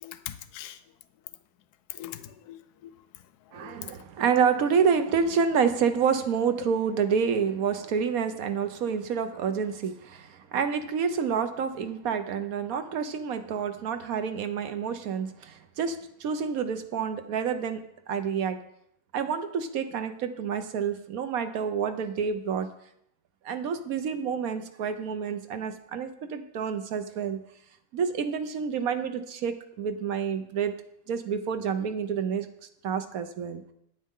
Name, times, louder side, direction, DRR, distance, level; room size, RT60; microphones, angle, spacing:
voice 1, 0.0-0.8 1.9-2.9 3.5-3.8, left 12 dB, 75° left, 1.2 m, -41 dB
voice 2, 3.5-18.6 19.1-22.7 23.4-27.4 27.9-30.7 31.1-32.5 32.8-33.6, right 6 dB, 65° right, 1.2 m, -28 dB
9.5 x 9.3 x 3.7 m
omnidirectional pair, 1.7 m